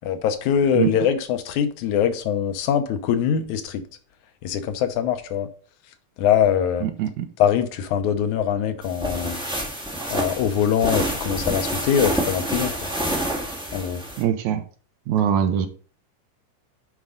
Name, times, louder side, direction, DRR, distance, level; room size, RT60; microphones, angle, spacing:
voice 1, 0.0-3.8 4.4-5.5 6.2-6.9 7.4-9.4 10.1-12.7 13.7-14.0, left 8 dB, 75° left, 2.1 m, -22 dB
voice 2, 6.8-7.3 14.2-14.6 15.1-15.7, right 9 dB, 75° right, 2.1 m, -22 dB
sound 1, 8.8-14.2, right 1 dB, 5° right, 0.5 m, -28 dB
9.8 x 4.6 x 3.8 m
omnidirectional pair, 3.7 m